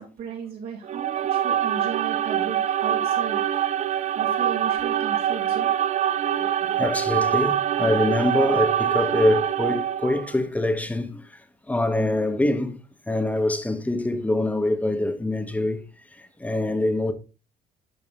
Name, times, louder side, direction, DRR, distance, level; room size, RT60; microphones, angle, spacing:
voice 1, 0.0-3.4 3.9-5.7, right 6 dB, 70° right, 4.7 m, -36 dB
sound 1, 0.8-10.3, right 10 dB, 45° right, 0.5 m, -24 dB
voice 2, 6.2-12.8 13.1-15.8 16.1-17.1, left 1 dB, 10° left, 1.2 m, -25 dB
12.0 x 5.4 x 2.5 m
cardioid pair, 110°, 17 cm